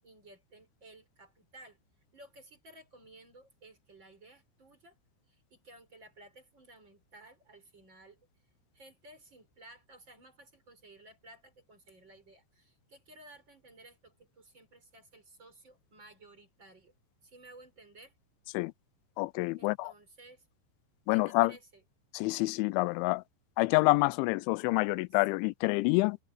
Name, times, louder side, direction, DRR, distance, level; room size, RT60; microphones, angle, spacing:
voice 1, 0.0-1.8 2.1-5.0 5.3-8.2 8.7-16.9 17.2-18.1 19.6-20.5 21.1-21.8, right 2 dB, 25° right, 5.8 m, -56 dB
voice 2, 19.2-19.9 21.1-21.5 22.1-23.2 23.6-26.2, left 23 dB, 85° left, 2.9 m, -27 dB
omnidirectional pair, 5.4 m